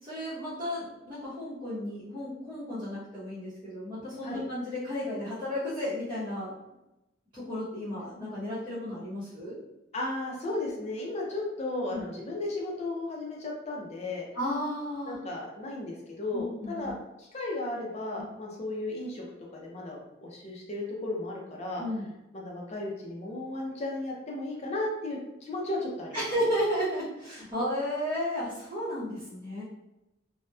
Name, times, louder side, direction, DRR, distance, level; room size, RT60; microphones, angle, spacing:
voice 1, 0.0-6.5 7.3-9.6 11.9-12.0 14.3-15.2 16.3-16.9 21.8-22.1 26.1-29.6, equal, 25° right, -12 dB, 0.8 m, -33 dB
voice 2, 9.9-14.3 15.0-19.2 19.5-21.8 22.3-26.2, left 2 dB, 35° left, -1 dB, 0.4 m, -35 dB
2.8 x 2.0 x 2.2 m, 0.93 s
head